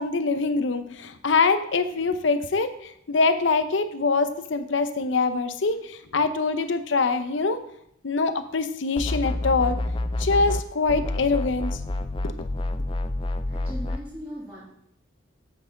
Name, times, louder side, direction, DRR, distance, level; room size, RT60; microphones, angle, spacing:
voice 1, 0.0-7.6 8.0-9.8 10.2-11.8 12.2-12.3, left 4 dB, 75° left, 10 dB, 0.7 m, -24 dB
sound 1, 9.0-10.6 10.9-14.0, left 1 dB, 25° left, 0.4 m, -28 dB
voice 2, 13.4-14.6, equal, 5° right, -12 dB, 2.8 m, -39 dB
8.8 x 8.2 x 3.9 m, 0.74 s
head